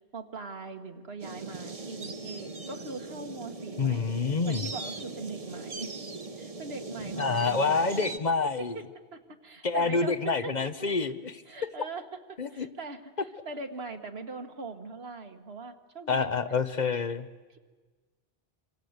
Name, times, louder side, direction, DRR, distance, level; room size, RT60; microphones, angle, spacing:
voice 1, 0.1-4.1 4.4-5.9 6.4-8.8 9.1-11.1 11.5-16.3 17.5-17.6, right 3 dB, 80° right, 4 dB, 1.8 m, -41 dB
sound 1, 1.2-8.2, right 3 dB, 35° right, 1.0 m, -40 dB
voice 2, 3.8-4.7 7.2-8.8 9.6-11.4 12.4-12.7 16.1-17.3, left 4 dB, 45° left, 11 dB, 1.1 m, -27 dB
26.5 x 25.0 x 8.1 m, 1.4 s
omnidirectional pair, 1.0 m